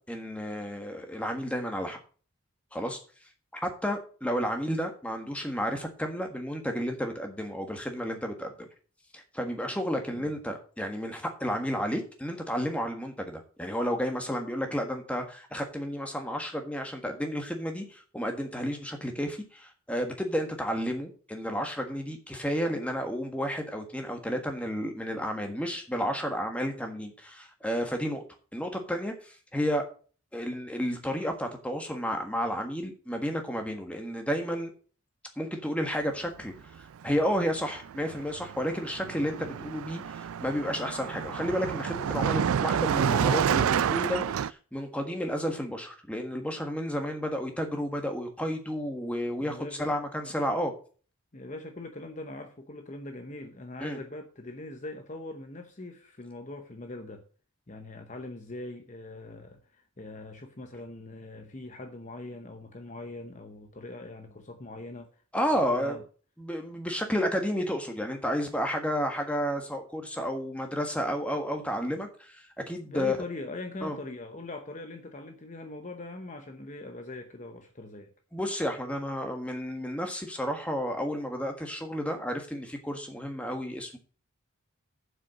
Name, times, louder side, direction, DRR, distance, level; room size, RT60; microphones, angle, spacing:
voice 1, 0.1-2.0 2.7-3.0 3.5-8.7 9.1-28.2 28.5-29.8 30.3-34.7 35.4-50.7 53.8-54.0 65.3-66.0 66.4-73.2 73.8-74.0 78.3-84.0, equal, 5° left, 1.5 m, -32 dB
Car passing by, 37.0-37.2 37.5-44.5, right 8 dB, 75° right, 0.3 m, -29 dB
voice 2, 49.4-50.0 50.2-50.3 51.3-57.3 57.7-65.2 65.7-66.0 72.8-78.1, left 2 dB, 35° left, 0.8 m, -42 dB
7.7 x 5.8 x 7.4 m
head